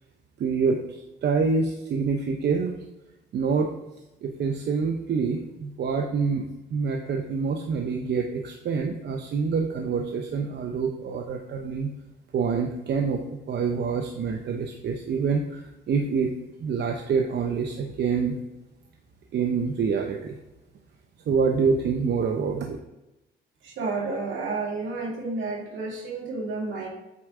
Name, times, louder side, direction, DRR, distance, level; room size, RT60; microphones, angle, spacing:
voice 1, 0.4-2.8 3.3-3.7 4.2-11.9 12.3-16.3 16.6-18.4 19.3-20.4 21.3-22.8, right 5 dB, 60° right, 3 dB, 0.8 m, -26 dB
voice 2, 23.6-26.9, right 3 dB, 75° right, -1 dB, 2.2 m, -31 dB
8.4 x 4.4 x 3.7 m, 0.97 s
cardioid pair, 90°, 20 cm